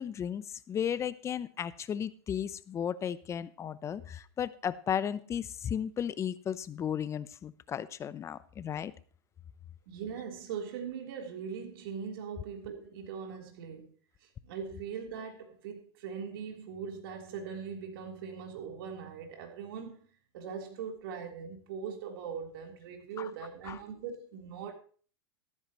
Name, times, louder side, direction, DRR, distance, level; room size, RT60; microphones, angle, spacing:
voice 1, 0.0-8.9 23.2-23.3 23.7-23.8, left 8 dB, 20° left, 0.7 m, -35 dB
voice 2, 9.9-13.9 14.2-20.1 20.3-24.7, right 6 dB, 65° right, 3.6 m, -41 dB
14.0 x 13.0 x 3.0 m
hypercardioid pair, 125°, 13 cm